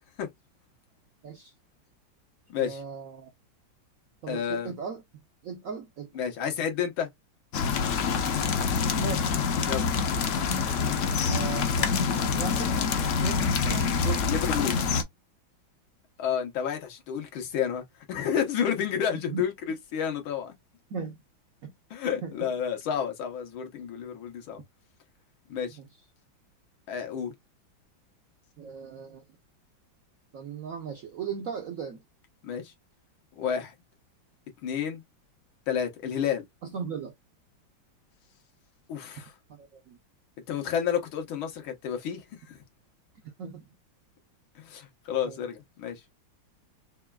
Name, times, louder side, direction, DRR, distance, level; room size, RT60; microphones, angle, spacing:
voice 1, 2.6-3.3 4.2-5.0 5.4-6.1 8.9-9.4 11.3-12.8 13.2-14.4 19.3-19.4 20.9-21.2 21.6-21.7 22.2-22.5 25.8-25.9 28.6-29.2 30.3-32.0 36.6-37.1 39.5-40.0 43.4-43.6 45.2-45.4, right 6 dB, 75° right, 0.7 m, -37 dB
voice 2, 4.3-4.7 6.2-7.1 9.7-9.9 14.3-14.8 16.2-20.5 21.9-24.6 25.5-25.8 26.9-27.3 32.4-32.7 33.4-33.7 34.6-35.0 35.7-36.4 38.9-39.3 40.5-42.6 44.6-46.0, left 8 dB, 90° left, 1.9 m, -30 dB
sound 1, 7.5-15.0, left 5 dB, 70° left, 0.7 m, -26 dB
5.6 x 2.3 x 2.3 m
omnidirectional pair, 2.2 m